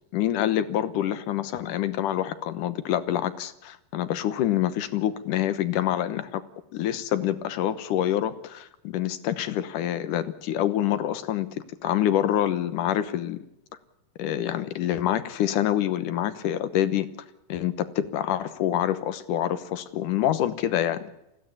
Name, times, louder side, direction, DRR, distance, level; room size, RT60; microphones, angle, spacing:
voice 1, 0.1-6.4 6.7-13.4 14.2-17.1 17.5-21.0, left 11 dB, 70° left, 13 dB, 2.5 m, -26 dB
20.5 x 15.5 x 9.9 m, 0.85 s
omnidirectional pair, 4.0 m